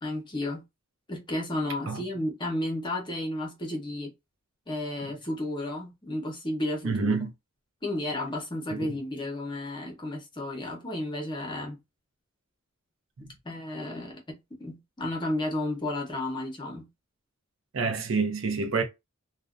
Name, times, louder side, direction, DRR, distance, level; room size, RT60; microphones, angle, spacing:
voice 1, 0.0-0.6 1.1-4.1 4.7-7.2 7.8-11.8 13.4-16.9, left 1 dB, 25° left, 0.8 m, -32 dB
voice 2, 6.8-7.3 8.7-8.9 13.2-13.3 17.7-18.8, right 4 dB, 70° right, 0.6 m, -27 dB
2.5 x 2.1 x 2.4 m
head